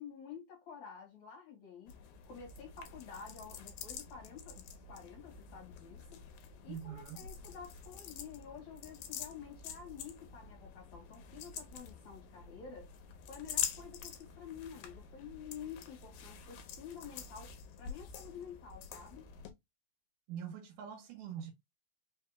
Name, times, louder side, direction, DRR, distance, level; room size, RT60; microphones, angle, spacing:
voice 1, 0.0-1.9 2.3-6.2 6.6-12.9 13.3-17.5 17.8-19.3, left 7 dB, 60° left, 2.5 m, -50 dB
sound 1, 1.9-19.5, left 8 dB, 80° left, 2.3 m, -46 dB
voice 2, 6.7-7.2 20.3-21.5, right 8 dB, 70° right, 2.3 m, -44 dB
5.3 x 2.8 x 2.3 m
omnidirectional pair, 4.0 m